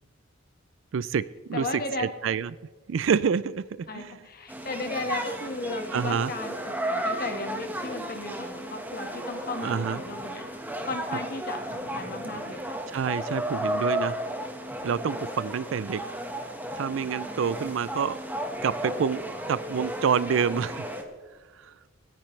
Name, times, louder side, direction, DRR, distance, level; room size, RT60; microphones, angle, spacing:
voice 1, 0.9-1.7 2.0-2.5 2.9-3.6 3.9-4.1 5.9-6.3 9.6-10.0 12.9-14.2 14.8-16.0 16.8-18.2 18.6-19.2 19.5-20.9 21.6-21.7, right 6 dB, 65° right, 17 dB, 0.4 m, -27 dB
voice 2, 1.5-2.1 3.9-10.4 10.8-12.8, left 2 dB, 50° left, 5 dB, 1.6 m, -35 dB
sound 1, 4.5-21.0, right 1 dB, 10° right, 1.4 m, -34 dB
26.0 x 10.5 x 3.3 m, 1.5 s
head